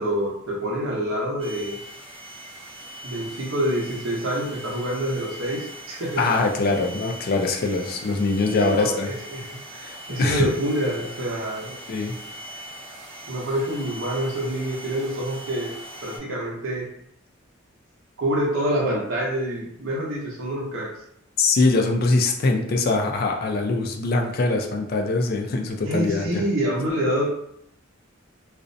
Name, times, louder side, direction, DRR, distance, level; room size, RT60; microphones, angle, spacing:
voice 1, 0.0-1.8 3.0-6.2 6.6-6.9 8.6-9.6 10.1-11.8 13.3-15.7 16.0-16.9 18.2-20.9 25.9-27.3, right 1 dB, 75° right, -3 dB, 0.8 m, -26 dB
sound 1, 1.4-16.2, right 1 dB, 30° right, 0.7 m, -40 dB
voice 2, 6.2-9.1 9.7-10.5 11.9-12.2 21.4-26.4, left 3 dB, 50° left, 3 dB, 0.4 m, -23 dB
2.5 x 2.0 x 2.5 m, 0.73 s
head